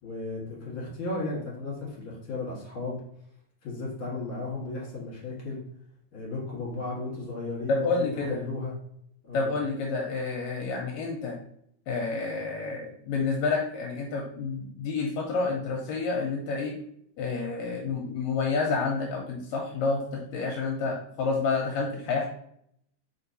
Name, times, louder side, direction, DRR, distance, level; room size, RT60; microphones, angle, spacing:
voice 1, 0.0-3.0 3.6-5.6 6.1-8.8 9.2-9.5, left 2 dB, 50° left, -4 dB, 2.2 m, -35 dB
voice 2, 7.7-8.4 9.3-11.4 11.9-16.7 17.2-22.3, left 4 dB, 80° left, 0 dB, 1.9 m, -29 dB
4.5 x 4.4 x 2.7 m, 0.70 s
omnidirectional pair, 3.3 m